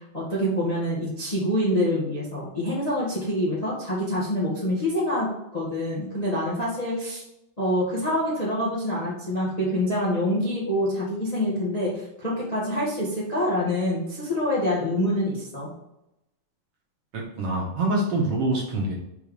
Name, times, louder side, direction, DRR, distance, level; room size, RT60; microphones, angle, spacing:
voice 1, 0.1-5.3 5.5-7.2 7.6-15.7, left 1 dB, 20° left, -6 dB, 1.2 m, -26 dB
voice 2, 17.1-18.9, right 2 dB, 60° right, -2 dB, 2.0 m, -25 dB
5.5 x 4.7 x 5.0 m, 0.88 s
omnidirectional pair, 3.4 m